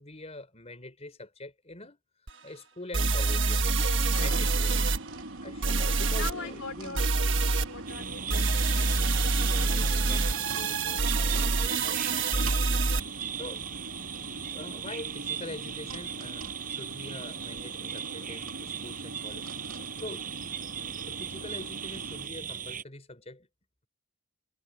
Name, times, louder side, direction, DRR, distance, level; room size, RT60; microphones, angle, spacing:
voice 1, 0.0-2.0 2.4-4.7 5.4-7.0 9.3-13.7 14.2-20.3 21.1-23.5, left 2 dB, 30° left, 4.1 m, -45 dB
sound 1, 2.3-2.4 2.9-5.0 5.6-6.3 7.0-7.7 8.3-13.0, right 3 dB, 60° right, 1.4 m, -26 dB
voice 2, 3.7-4.9 6.2-7.1 7.4-9.2, left 4 dB, 65° left, 4.8 m, -42 dB
sound 2, 4.1-22.3, right 2 dB, 80° right, 2.4 m, -43 dB
sound 3, 7.9-22.8, right 8 dB, 40° right, 5.6 m, -38 dB
head